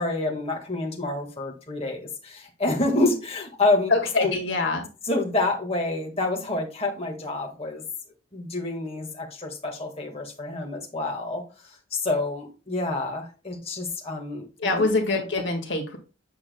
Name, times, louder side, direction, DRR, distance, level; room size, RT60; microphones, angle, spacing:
voice 1, 0.0-3.9 4.2-4.3 5.1-7.8 8.3-11.4 11.9-14.9, left 2 dB, 30° left, 0 dB, 1.6 m, -28 dB
voice 2, 3.9-4.9 14.6-16.0, left 3 dB, 60° left, 3 dB, 1.7 m, -24 dB
8.4 x 7.2 x 2.2 m, 0.31 s
head